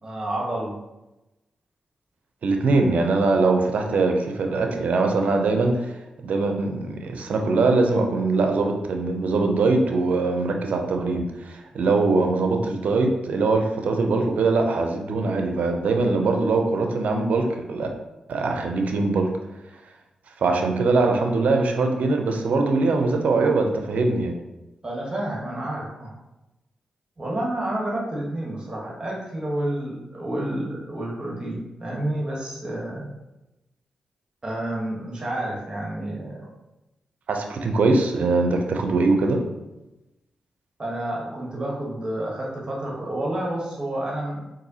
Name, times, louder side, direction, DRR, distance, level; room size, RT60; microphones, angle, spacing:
voice 1, 0.0-0.8 24.8-26.1 27.2-33.1 34.4-36.5 40.8-44.4, right 1 dB, 35° right, -4 dB, 1.1 m, -29 dB
voice 2, 2.4-5.8 6.2-17.9 18.3-19.3 20.4-24.4 37.3-39.4, right 3 dB, 70° right, 3 dB, 0.5 m, -22 dB
4.0 x 2.6 x 2.7 m, 0.97 s
supercardioid pair, 40°, 3 cm